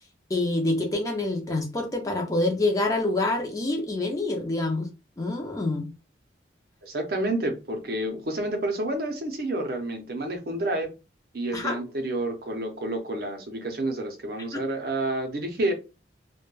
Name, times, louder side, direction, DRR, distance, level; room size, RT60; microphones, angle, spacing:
voice 1, 0.3-4.9 5.2-5.9 11.5-11.8 14.5-14.6, left 2 dB, 20° left, 0.4 m, -26 dB
voice 2, 6.8-10.9 11.3-15.7, right 1 dB, 50° right, 0.5 m, -29 dB
2.1 x 2.1 x 3.0 m
head